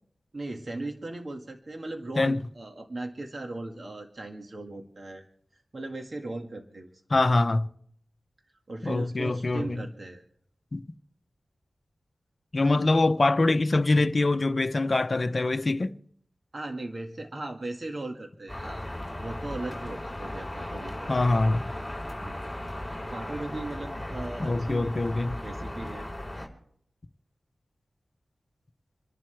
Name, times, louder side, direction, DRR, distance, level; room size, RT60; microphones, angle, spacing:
voice 1, 0.3-5.2 5.7-6.9 8.7-10.2 16.5-18.8 19.2-21.1 22.2-22.5 23.1-25.1 25.4-26.1, right 2 dB, 50° right, 1.9 m, -38 dB
voice 2, 7.1-7.7 8.8-9.8 10.7-10.8 12.5-16.0 21.1-21.7 24.4-25.4, left 2 dB, 45° left, 0.9 m, -24 dB
sound 1, 18.5-26.5, left 1 dB, 5° left, 4.3 m, -36 dB
27.5 x 11.5 x 3.4 m
wide cardioid pair, 80°, 0 cm